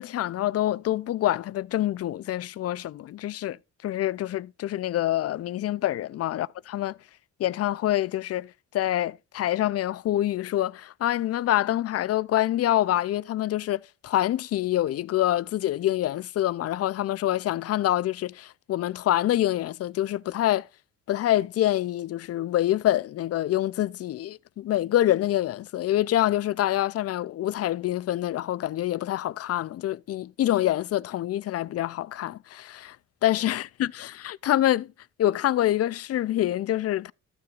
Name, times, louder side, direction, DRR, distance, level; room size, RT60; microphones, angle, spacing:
voice 1, 0.0-3.6 3.8-7.0 7.4-20.7 21.1-33.0 33.2-34.9 35.2-37.1, left 13 dB, 55° left, 0.5 m, -26 dB
14.0 x 6.7 x 2.4 m
cardioid pair, 90°, 30 cm